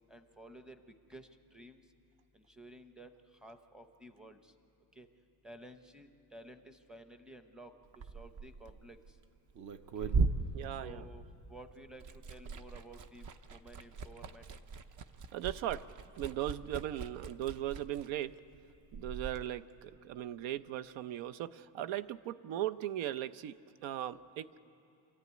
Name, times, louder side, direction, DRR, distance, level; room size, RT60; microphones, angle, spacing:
voice 1, 0.1-1.8 2.3-4.5 4.9-5.1 5.4-9.2 10.0-10.1 10.7-14.5, right 1 dB, ahead, 6 dB, 0.7 m, -54 dB
Liquid, 7.8-11.5 11.8-19.4, right 4 dB, 40° right, 0.7 m, -39 dB
voice 2, 10.5-11.0 15.3-15.9 16.2-18.4 18.9-24.6, right 12 dB, 80° right, 13 dB, 0.8 m, -38 dB
27.0 x 14.0 x 9.5 m, 2.9 s
cardioid pair, 165°, 46 cm